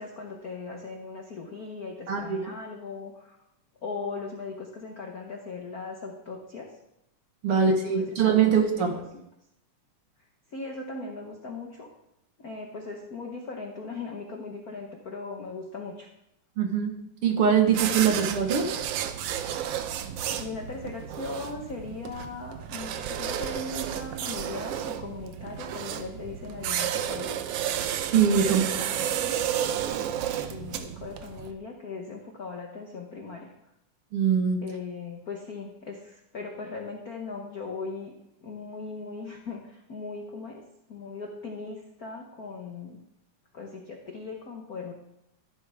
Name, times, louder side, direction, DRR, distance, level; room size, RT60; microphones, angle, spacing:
voice 1, 0.0-3.4 3.8-6.8 7.5-8.1 8.4-9.2 10.5-11.9 12.4-16.1 20.4-27.4 28.4-29.4 30.5-33.5 34.6-38.1 38.4-43.0 43.5-44.9, left 4 dB, 70° left, 1 dB, 0.8 m, -39 dB
voice 2, 2.1-2.4 7.4-8.9 16.6-16.9 17.2-18.7 28.1-28.9 34.1-34.6, right 7 dB, 55° right, 4 dB, 1.9 m, -22 dB
sound 1, 17.7-31.5, right 10 dB, 75° right, 1.5 m, -32 dB
13.5 x 11.5 x 3.5 m, 0.82 s
omnidirectional pair, 3.4 m